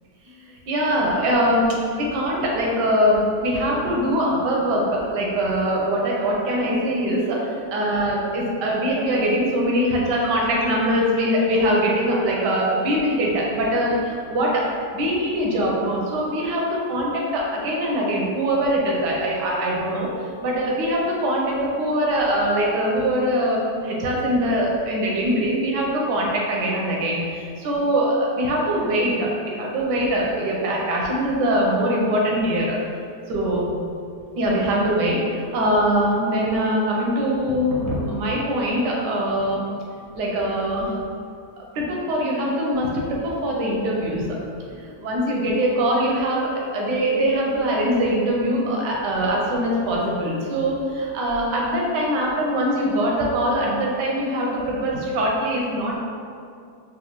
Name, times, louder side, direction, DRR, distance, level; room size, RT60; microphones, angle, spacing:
voice 1, 0.4-14.6 14.9-29.3 29.5-32.7 33.3-33.7 34.4-39.7 40.1-41.0 41.6-44.3 44.7-56.0, equal, 85° right, -3 dB, 1.3 m, -22 dB
3.9 x 2.3 x 2.9 m, 2.4 s
omnidirectional pair, 1.8 m